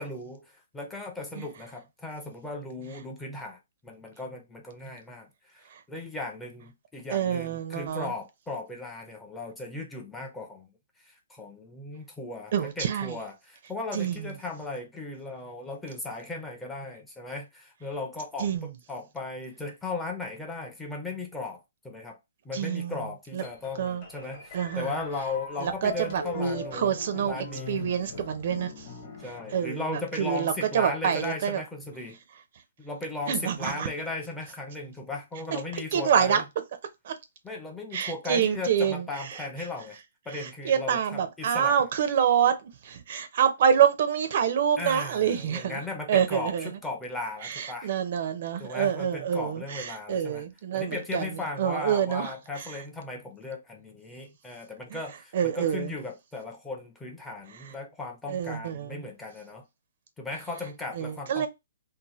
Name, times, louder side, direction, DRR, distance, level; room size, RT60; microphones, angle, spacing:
voice 1, 0.0-10.7 11.0-22.2 22.4-27.9 29.2-32.2 32.8-36.4 37.4-40.0 40.3-41.8 44.8-47.9 48.6-50.5 50.7-59.7 60.2-61.5, left 3 dB, 5° left, 0.5 m, -37 dB
voice 2, 7.1-8.1 12.5-13.2 13.9-14.2 18.4-18.7 22.5-23.0 23.3-23.4 23.8-24.0 24.5-24.9 25.6-27.3 27.7-28.9 29.5-29.8 30.2-31.6 33.3-33.9 35.9-36.4 37.0-37.1 37.9-39.0 39.3-39.4 40.3-45.8 46.1-46.7 47.4-52.3 55.3-55.9 58.3-59.0 61.0-61.5, right 8 dB, 45° right, 0.5 m, -26 dB
sound 1, 23.4-30.1, left 4 dB, 35° left, 1.0 m, -40 dB
2.7 x 2.1 x 3.0 m
hypercardioid pair, 160°, 0 cm